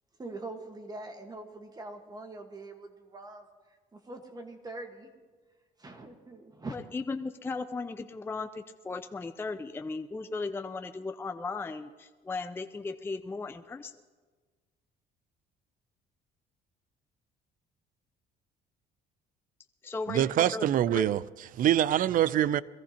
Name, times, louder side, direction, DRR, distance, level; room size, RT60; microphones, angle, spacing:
voice 1, 0.2-3.5 3.9-5.1 5.8-6.7, right 2 dB, 20° right, 1.4 m, -43 dB
voice 2, 6.7-13.9 19.8-20.2 20.5-20.6 20.9-21.1, left 3 dB, 15° left, 0.5 m, -36 dB
voice 3, 20.1-22.6, right 11 dB, 55° right, 0.4 m, -25 dB
22.0 x 15.5 x 2.9 m
cardioid pair, 110°, 17 cm